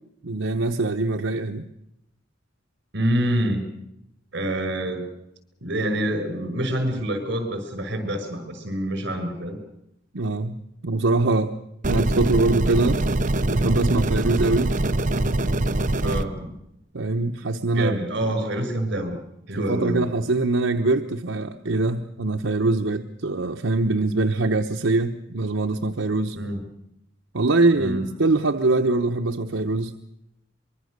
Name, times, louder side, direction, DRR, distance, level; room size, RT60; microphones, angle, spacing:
voice 1, 0.2-1.7 10.1-11.6 11.9-13.0 13.5-14.7 16.9-18.0 19.6-26.4 27.3-29.9, right 2 dB, 90° right, 5 dB, 1.0 m, -23 dB
voice 2, 2.9-3.7 4.3-5.0 5.6-9.6 16.0-16.5 17.7-19.2 19.5-20.1 26.4-26.6 27.8-28.1, right 1 dB, 65° right, 7 dB, 6.0 m, -26 dB
sound 1, 11.8-16.2, right 1 dB, 40° right, 1.0 m, -23 dB
24.0 x 22.5 x 6.6 m, 0.82 s
head